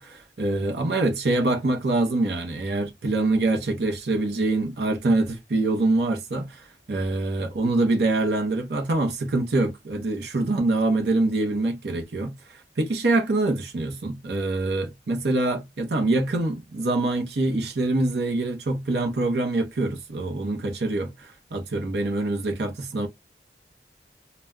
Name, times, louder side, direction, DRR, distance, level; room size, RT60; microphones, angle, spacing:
voice 1, 0.0-23.1, right 2 dB, 65° right, 0.7 m, -25 dB
2.2 x 2.1 x 3.5 m
head